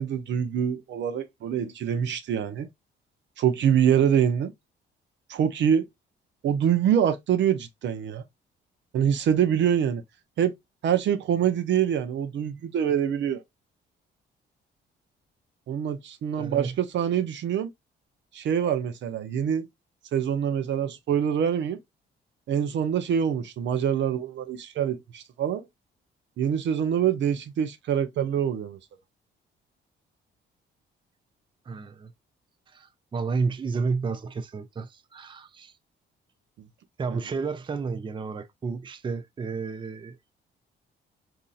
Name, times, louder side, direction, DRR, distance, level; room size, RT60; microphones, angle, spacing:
voice 1, 0.0-2.7 3.4-4.5 5.3-5.9 6.4-8.2 8.9-10.0 10.4-10.5 10.8-13.4 15.7-17.7 18.3-19.7 20.1-21.8 22.5-25.6 26.4-28.8 37.1-37.2, right 8 dB, 65° right, 0.6 m, -25 dB
voice 2, 16.4-16.8 31.7-32.1 32.7-35.7 37.0-40.2, right 4 dB, 25° right, 0.5 m, -31 dB
4.0 x 2.7 x 2.3 m
cardioid pair, 90°, 20 cm